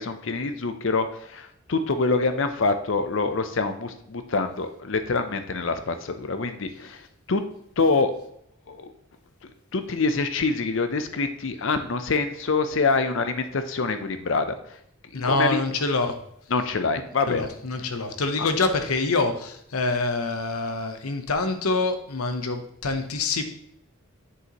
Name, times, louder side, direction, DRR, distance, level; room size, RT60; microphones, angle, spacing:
voice 1, 0.0-7.0 7.3-7.4 7.8-8.1 8.7-8.9 9.7-14.5 15.2-15.6 16.5-17.5 18.4-18.5, left 4 dB, 60° left, 9 dB, 0.6 m, -25 dB
voice 2, 15.1-16.1 17.3-23.4, left 3 dB, 90° left, 7 dB, 0.8 m, -26 dB
7.7 x 6.4 x 3.0 m, 0.72 s
head